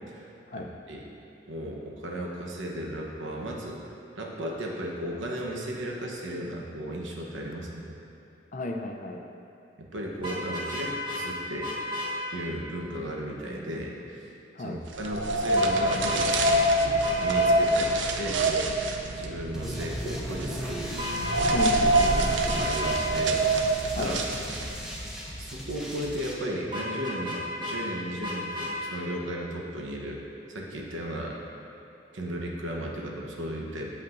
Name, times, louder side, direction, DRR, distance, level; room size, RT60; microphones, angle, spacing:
voice 1, 0.1-1.0 1.5-3.8 4.2-7.9 9.8-11.7 12.3-14.3 14.6-16.7 17.2-18.7 19.1-20.9 22.1-23.4 23.9-24.2 25.4-30.2 30.5-31.4 32.1-33.9, equal, 90° right, -1 dB, 1.0 m, -35 dB
voice 2, 8.5-9.2 14.6-14.8 21.5-22.3 23.9-24.1, left 2 dB, 40° left, 3 dB, 0.5 m, -33 dB
Vehicle horn car horn honking, 10.2-11.2 11.6-12.1 15.6-16.2 16.4-16.6 17.0-17.5 20.9-21.7 21.9-22.1 22.5-23.0 26.7-27.8 28.2-28.7, equal, 25° right, 1.1 m, -33 dB
sound 1, 14.9-24.9, right 1 dB, 70° right, 0.5 m, -26 dB
sound 2, 19.5-26.3, equal, 5° right, 0.9 m, -36 dB
8.2 x 7.6 x 2.6 m, 2.8 s
head